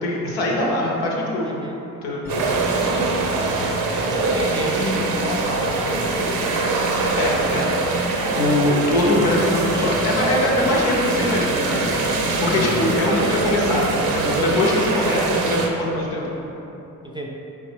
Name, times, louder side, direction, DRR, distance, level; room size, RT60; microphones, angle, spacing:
voice 1, 0.0-1.5 2.0-2.2 7.2-13.8 14.1-16.2, left 1 dB, 80° left, -3 dB, 0.8 m, -22 dB
voice 2, 1.4-1.8 3.9-6.4 12.5-12.9 17.0-17.3, equal, 10° right, -1 dB, 0.5 m, -30 dB
Musical instrument, 2.2-15.0, left 1 dB, 30° left, 1.0 m, -34 dB
sound 1, 2.3-15.7, right 3 dB, 55° right, 0.6 m, -23 dB
4.9 x 3.2 x 3.2 m, 3.0 s
hypercardioid pair, 40°, 43 cm